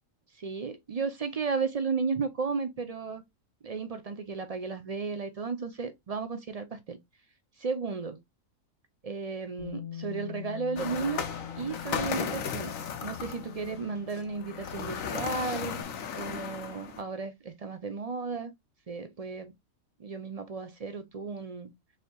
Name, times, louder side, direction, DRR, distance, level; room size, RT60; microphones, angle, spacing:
voice 1, 0.4-3.2 3.6-7.0 7.6-8.2 9.0-11.2 11.6-12.7 13.0-15.8 16.2-18.5 18.9-19.5 20.0-21.7, right 4 dB, 45° right, 0.5 m, -34 dB
Bass guitar, 9.6-15.8, left 10 dB, 20° left, 0.8 m, -44 dB
sound 1, 10.8-17.0, left 7 dB, 75° left, 1.2 m, -36 dB
6.6 x 2.9 x 2.2 m
omnidirectional pair, 1.4 m